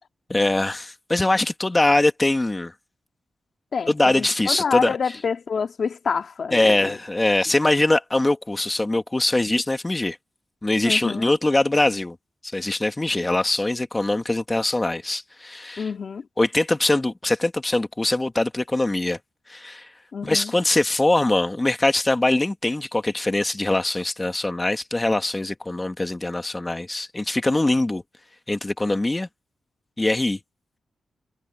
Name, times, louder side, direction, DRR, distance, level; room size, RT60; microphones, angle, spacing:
voice 1, 0.3-2.7 3.9-4.9 6.5-10.2 10.6-12.2 12.5-15.9 16.4-19.2 19.5-19.9 20.2-28.0 28.5-29.3 30.0-30.4, left 2 dB, 15° left, 1.8 m, -22 dB
voice 2, 3.7-7.0 7.5-7.6 10.9-11.3 15.8-16.3 20.1-20.5, left 6 dB, 55° left, 2.3 m, -27 dB
wide cardioid pair, 125°, 0 cm